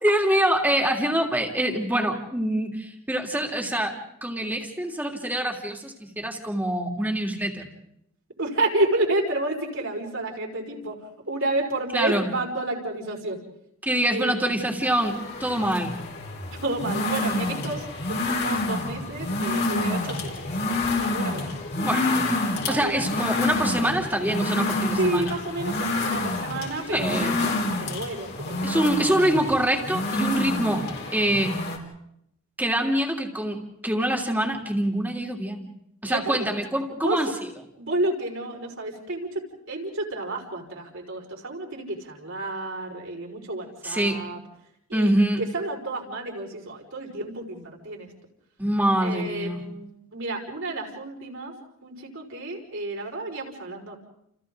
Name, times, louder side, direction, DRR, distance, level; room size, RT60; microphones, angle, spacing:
voice 1, 0.0-7.7 11.9-12.3 13.8-16.0 21.8-22.2 22.7-25.4 26.9-27.4 28.6-30.8 31.1-31.5 32.6-35.6 36.0-37.5 43.8-44.2 44.9-45.4 48.6-49.6, right 1 dB, 10° right, 1 dB, 3.0 m, -25 dB
voice 2, 8.4-11.0 11.3-13.4 14.1-14.3 16.5-20.5 21.0-21.5 22.7-23.0 25.0-29.0 36.0-36.4 36.9-37.2 37.8-39.4 39.7-44.4 44.9-48.1 49.0-51.5 51.8-54.0, right 2 dB, 65° right, 0 dB, 5.2 m, -30 dB
sound 1, 14.8-31.8, left 2 dB, 55° left, 4.5 m, -28 dB
30.0 x 29.5 x 3.9 m, 0.76 s
head